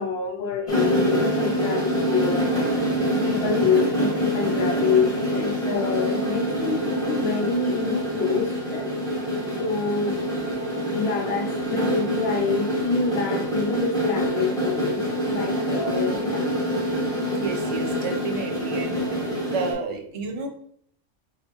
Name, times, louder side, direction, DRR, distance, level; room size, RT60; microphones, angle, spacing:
voice 1, 0.0-2.8 3.1-8.9 9.6-10.3 10.9-15.0 15.3-16.5, left 5 dB, 60° left, 0.8 m, -26 dB
sound 1, 0.7-19.7, equal, 5° left, 1.5 m, -26 dB
voice 2, 17.3-19.2 19.5-20.5, right 4 dB, 65° right, 1.1 m, -31 dB
5.8 x 2.4 x 3.0 m
omnidirectional pair, 1.3 m